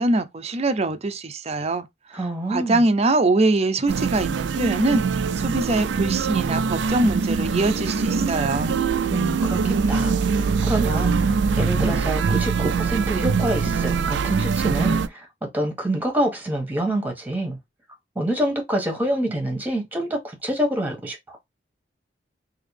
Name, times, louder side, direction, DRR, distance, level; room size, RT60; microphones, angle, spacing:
voice 1, 0.0-1.9 2.1-8.7, right 2 dB, 35° right, 0.6 m, -23 dB
voice 2, 2.1-2.8 9.1-17.6 18.1-21.4, right 1 dB, 10° right, 1.4 m, -26 dB
sound 1, 3.9-15.1, right 5 dB, 80° right, 0.4 m, -23 dB
3.9 x 2.9 x 3.3 m
head